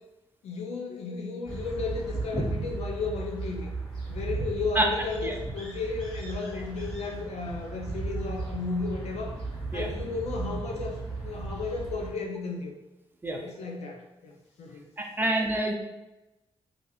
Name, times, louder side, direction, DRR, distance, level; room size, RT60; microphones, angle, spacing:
voice 1, 0.4-3.7 4.1-9.4 9.7-12.7 13.3-14.8 15.2-15.3, left 4 dB, 80° left, 1 dB, 0.6 m, -34 dB
sound 1, 1.5-12.1, right 3 dB, 5° left, 1.3 m, -35 dB
voice 2, 15.0-15.7, right 1 dB, 20° right, 1 dB, 0.5 m, -26 dB
2.8 x 2.5 x 3.9 m, 1.0 s
cardioid pair, 100°, 11 cm